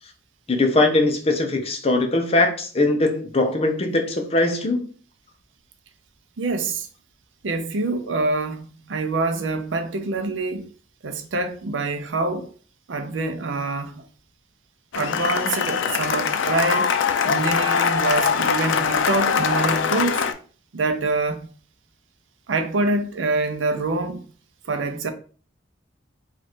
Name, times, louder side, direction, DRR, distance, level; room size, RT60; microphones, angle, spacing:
voice 1, 0.5-4.9, left 2 dB, 30° left, 0.6 m, -21 dB
voice 2, 6.4-6.9 7.4-10.7 11.0-12.5 12.9-14.1 14.9-16.9 17.2-20.3 20.7-21.5 22.5-24.2 24.6-25.1, right 3 dB, 90° right, 0.6 m, -25 dB
Cheering / Applause, 14.9-20.3, left 6 dB, 90° left, 0.4 m, -22 dB
3.1 x 2.4 x 4.2 m
head